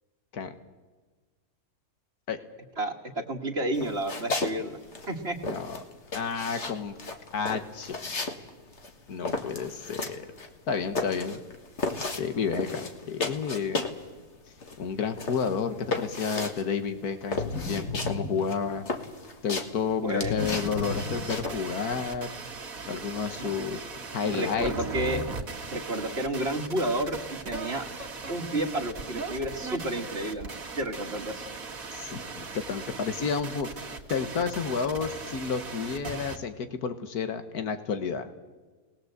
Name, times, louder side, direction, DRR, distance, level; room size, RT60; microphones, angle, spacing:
voice 1, 2.8-4.8 5.1-5.4 20.0-20.3 23.4-23.5 24.2-25.2 25.7-27.9 28.3-30.5 30.8-31.5, right 1 dB, 45° right, 3 dB, 1.9 m, -31 dB
sound 1, 3.7-4.6 4.8-14.1 14.3-21.6, left 3 dB, 50° left, 2.0 m, -34 dB
voice 2, 5.4-5.8 6.1-7.0 7.3-8.3 9.1-10.3 10.7-11.4 12.2-13.9 14.8-18.8 19.4-22.3 22.9-23.8 24.1-24.7 31.9-33.7 34.1-38.3, left 6 dB, 90° left, 9 dB, 1.8 m, -31 dB
sound 2, 17.4-19.1 20.2-21.9, left 3 dB, 65° left, 2.3 m, -36 dB
sound 3, 20.4-36.4, right 3 dB, 65° right, 2.3 m, -38 dB
24.0 x 19.5 x 8.0 m, 1.3 s
omnidirectional pair, 1.6 m